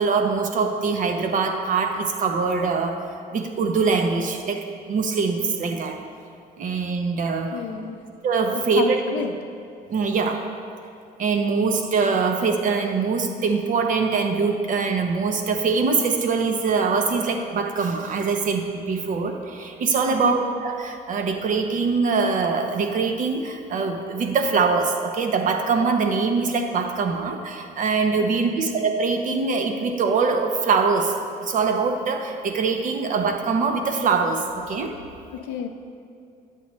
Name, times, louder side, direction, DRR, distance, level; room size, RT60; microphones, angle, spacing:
voice 1, 0.0-3.0 3.3-6.0 6.6-7.6 8.2-9.0 9.9-10.4 11.2-31.1 31.4-34.9, right 4 dB, 50° right, 5 dB, 0.8 m, -23 dB
voice 2, 7.5-8.0 8.8-9.3 20.2-20.3 28.4-28.7 35.3-35.7, left 7 dB, 90° left, 5 dB, 0.6 m, -30 dB
8.3 x 7.4 x 3.1 m, 2.4 s
cardioid pair, 110°, 17 cm